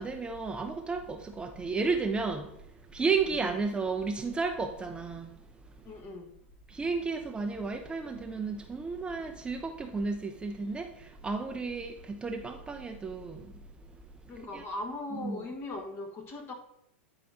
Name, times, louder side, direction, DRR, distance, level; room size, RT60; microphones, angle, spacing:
voice 1, 0.0-5.4 6.7-13.6 14.3-14.7 15.1-15.5, right 4 dB, 15° right, 0.5 m, -33 dB
voice 2, 5.8-6.3 14.3-16.5, left 2 dB, 35° left, 1.3 m, -39 dB
9.3 x 4.8 x 2.6 m
hypercardioid pair, 105°, 7 cm